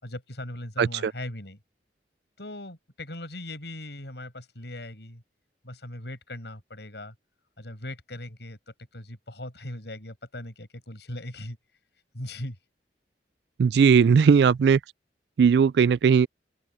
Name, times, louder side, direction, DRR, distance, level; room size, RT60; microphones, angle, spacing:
voice 1, 0.0-1.6 2.4-5.2 5.6-7.1 7.6-8.6 8.9-11.6 12.1-12.6, left 1 dB, 70° left, 6.2 m, -39 dB
voice 2, 0.8-1.1 13.6-14.8 15.4-16.3, right 6 dB, 70° right, 0.3 m, -18 dB
open air
head